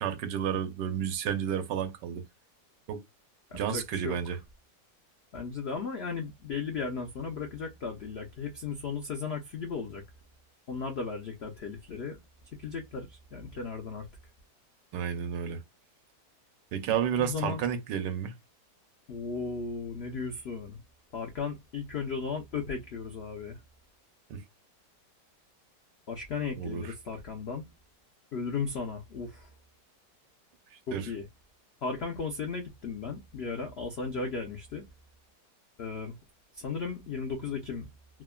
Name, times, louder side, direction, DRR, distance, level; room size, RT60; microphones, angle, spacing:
voice 1, 0.0-2.2 2.9-3.0 3.5-4.4 14.9-15.6 16.7-18.3 24.3-24.4 26.6-26.9 30.9-31.1, right 8 dB, 85° right, 1.3 m, -31 dB
voice 2, 3.5-4.2 5.3-10.0 10.7-12.2 12.6-14.1 17.2-17.6 19.1-20.8 21.1-23.6 26.1-27.6 28.3-29.5 30.9-31.3 31.8-34.8 35.8-36.2 36.5-37.9, left 5 dB, 75° left, 0.5 m, -35 dB
3.4 x 2.1 x 2.2 m
omnidirectional pair, 1.9 m